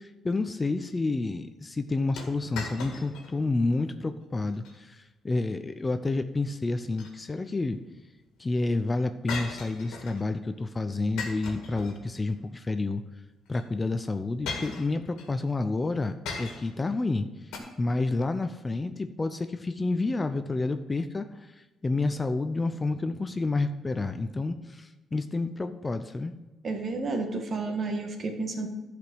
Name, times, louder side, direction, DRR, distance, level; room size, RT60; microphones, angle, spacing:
voice 1, 0.0-7.8 8.4-13.0 13.5-17.3 17.8-26.3, left 3 dB, 25° left, 9 dB, 0.6 m, -29 dB
sound 1, 2.2-3.3 3.7-3.8 4.4-4.8 6.7-7.6 9.3-10.3 11.2-12.3 13.5-13.6 14.5-15.3 16.3-16.9 17.5-17.6, left 4 dB, 90° left, 1.8 m, -38 dB
voice 2, 26.6-28.7, right 3 dB, 45° right, 4 dB, 1.7 m, -31 dB
11.5 x 5.1 x 6.2 m, 1.1 s
cardioid pair, 90°, 0 cm